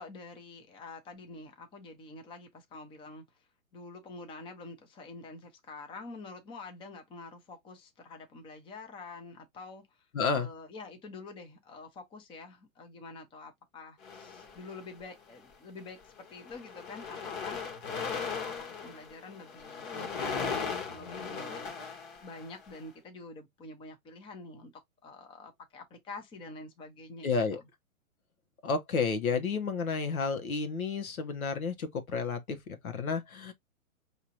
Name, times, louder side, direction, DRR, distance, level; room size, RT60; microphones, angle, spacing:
voice 1, 0.0-3.5 3.7-10.1 10.3-27.7, left 3 dB, 10° left, 0.7 m, -47 dB
voice 2, 10.1-10.5 27.2-27.6 28.6-32.6 32.8-33.5, left 5 dB, 80° left, 1.3 m, -31 dB
sound 1, 14.0-15.0 15.8-16.0 16.3-22.8, left 5 dB, 40° left, 1.4 m, -38 dB
4.8 x 2.9 x 2.8 m
hypercardioid pair, 135°, 41 cm